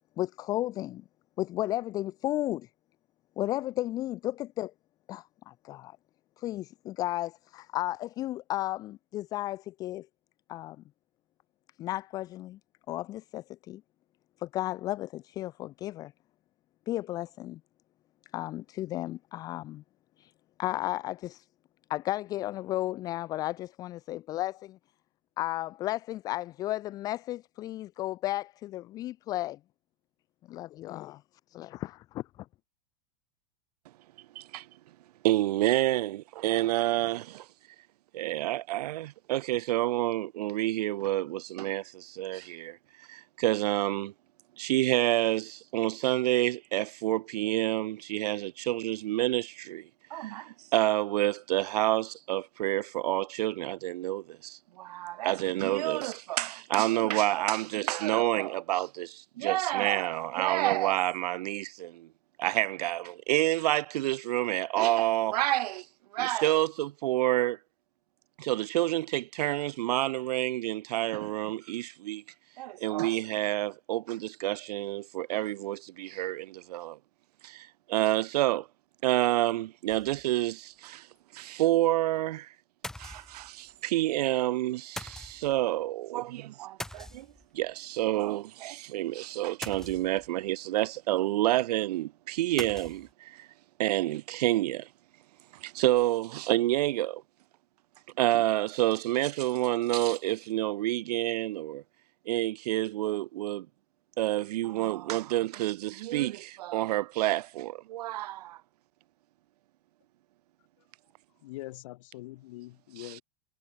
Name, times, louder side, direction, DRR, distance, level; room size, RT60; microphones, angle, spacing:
voice 1, 0.2-1.0 1.4-2.7 3.4-4.7 5.1-6.0 6.4-10.1 10.5-10.8 11.8-12.6 12.9-13.8 14.4-16.1 16.9-17.6 18.3-19.8 20.2-20.3 20.6-21.5 21.9-24.8 25.4-29.6 30.5-31.2 31.5-32.2, left 15 dB, 20° left, 0.5 m, -34 dB
voice 2, 35.2-37.4 38.1-42.8 43.1-44.1 44.6-62.1 62.4-65.8 66.1-67.6 68.4-72.2 72.6-77.0 77.4-78.7 79.0-81.1 81.3-82.5 83.0-87.3 87.5-93.5 93.8-94.9 95.6-97.2 98.2-101.8 102.3-103.7 104.2-108.6, right 15 dB, 90° right, 0.7 m, -28 dB
sound 1, 79.9-80.4 80.8-80.9 81.2-81.3 82.8-83.7 85.0-85.6 86.8-87.7 89.6-90.4 92.6-93.1, left 1 dB, ahead, 1.4 m, -42 dB
voice 3, 111.4-113.2, left 18 dB, 55° left, 1.7 m, -43 dB
supercardioid pair, 175°, 20 cm